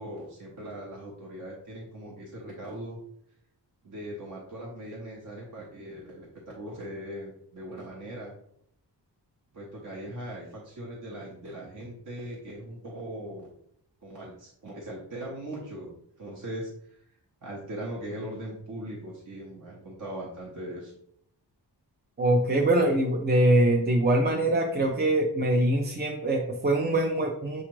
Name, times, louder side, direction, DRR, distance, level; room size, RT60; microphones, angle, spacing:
voice 1, 0.0-3.0 3.8-8.3 9.5-13.5 14.0-17.0 17.4-20.9, right 1 dB, 45° right, -3 dB, 0.8 m, -40 dB
voice 2, 22.2-27.6, right 1 dB, 25° right, 1 dB, 0.4 m, -23 dB
6.4 x 2.4 x 3.0 m, 0.71 s
wide cardioid pair, 130°, 43 cm